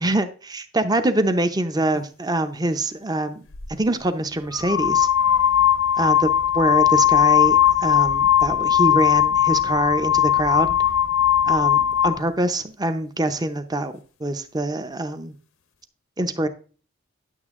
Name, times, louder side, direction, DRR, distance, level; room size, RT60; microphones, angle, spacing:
voice 1, 0.0-3.4 3.7-5.1 6.0-10.7 11.5-13.9 14.2-15.3 16.2-16.5, right 1 dB, 20° right, 10 dB, 0.7 m, -24 dB
sound 1, 3.5-3.7 4.5-12.2, left 10 dB, 75° left, 0.8 m, -19 dB
11.0 x 7.0 x 3.6 m, 0.40 s
head